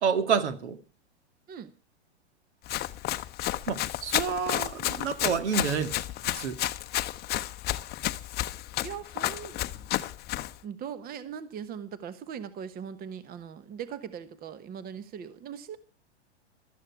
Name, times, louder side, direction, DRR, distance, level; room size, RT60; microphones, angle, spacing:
voice 1, 0.0-0.8 3.7-5.9 6.2-6.6, right 6 dB, 75° right, 10 dB, 2.2 m, -28 dB
Run, 2.6-10.6, left 15 dB, 30° left, 0.8 m, -31 dB
voice 2, 8.8-9.9 10.6-15.8, right 8 dB, 25° right, 14 dB, 1.2 m, -40 dB
15.5 x 13.5 x 4.7 m, 0.37 s
hypercardioid pair, 115°, 34 cm